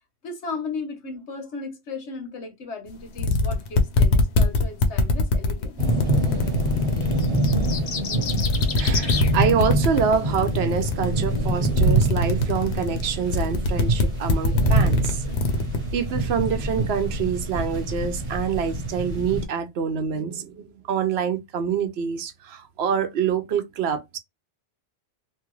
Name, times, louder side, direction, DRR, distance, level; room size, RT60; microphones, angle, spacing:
voice 1, 0.2-5.8, left 4 dB, 90° left, 1.3 m, -35 dB
sound 1, 2.9-3.0 3.2-7.8 8.2-15.8, left 3 dB, 75° left, 0.9 m, -22 dB
sound 2, 5.8-19.4, right 2 dB, 30° right, 1.0 m, -26 dB
sound 3, 7.2-9.3, left 6 dB, 50° left, 0.4 m, -30 dB
voice 2, 8.8-15.2 15.9-24.2, right 7 dB, 70° right, 0.9 m, -26 dB
2.9 x 2.4 x 3.1 m
omnidirectional pair, 1.1 m